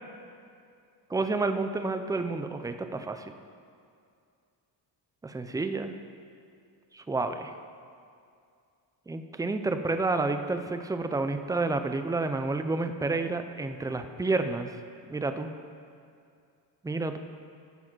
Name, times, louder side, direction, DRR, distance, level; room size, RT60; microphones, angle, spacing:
voice 1, 1.1-3.2 5.2-5.9 6.9-7.5 9.1-14.8 15.1-15.5 16.8-17.2, right 3 dB, 10° right, 8 dB, 0.3 m, -30 dB
13.0 x 4.8 x 6.1 m, 2.4 s
cardioid pair, 120°, 43 cm